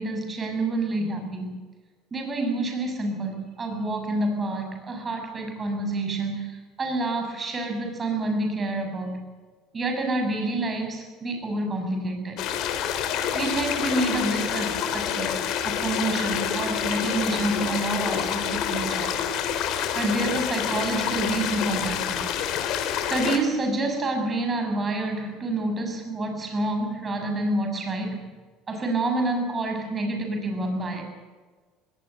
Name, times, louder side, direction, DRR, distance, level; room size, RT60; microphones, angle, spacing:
voice 1, 0.0-1.6 2.1-9.3 9.7-12.4 13.3-19.2 19.9-22.2 23.0-28.2 28.7-31.0, right 2 dB, 25° right, 4 dB, 6.6 m, -28 dB
sound 1, 12.4-23.4, left 9 dB, 60° left, 3.6 m, -27 dB
21.0 x 18.5 x 7.9 m, 1.4 s
supercardioid pair, 110°, 0 cm